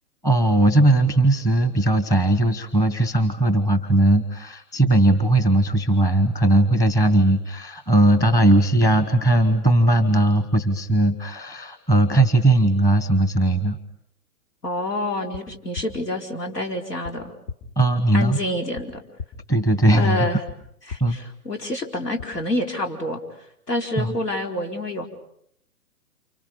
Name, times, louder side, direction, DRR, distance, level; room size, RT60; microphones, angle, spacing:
voice 1, 0.2-13.8 17.8-18.4 19.5-20.4 21.0-21.2 24.0-24.1, right 1 dB, 5° left, 9 dB, 1.1 m, -18 dB
voice 2, 14.6-17.3 18.1-19.0 20.0-20.4 20.9-23.2 23.7-25.1, left 1 dB, 85° left, 3 dB, 4.5 m, -27 dB
sound 1, 15.3-15.4 15.7-15.9 17.0-17.1 17.5-17.6 18.7-18.8 19.2-19.3 20.5-20.6 20.9-21.0 22.2-22.3, left 5 dB, 60° left, 4.4 m, -34 dB
29.0 x 29.0 x 5.4 m, 0.69 s
hypercardioid pair, 130°, 46 cm